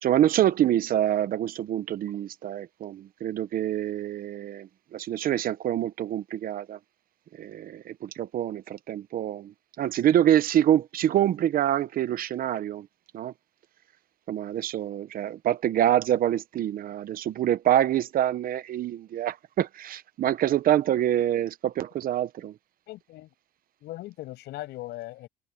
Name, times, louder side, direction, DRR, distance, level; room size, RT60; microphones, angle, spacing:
voice 1, 0.0-6.8 7.3-12.9 13.1-13.3 14.3-22.5, right 11 dB, 60° right, 0.9 m, -26 dB
voice 2, 22.9-23.3 23.8-25.3, left 16 dB, 80° left, 7.4 m, -39 dB
open air
cardioid pair, 110°, 17 cm